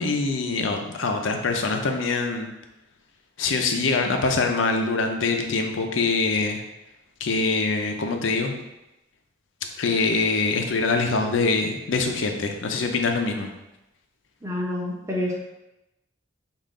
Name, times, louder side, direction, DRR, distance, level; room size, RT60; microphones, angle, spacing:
voice 1, 0.0-2.5 3.4-6.6 7.2-8.5 9.8-13.5, left 3 dB, 75° left, 4 dB, 0.6 m, -24 dB
voice 2, 14.4-15.4, left 1 dB, 15° right, -3 dB, 0.8 m, -28 dB
5.4 x 2.4 x 3.7 m, 0.95 s
head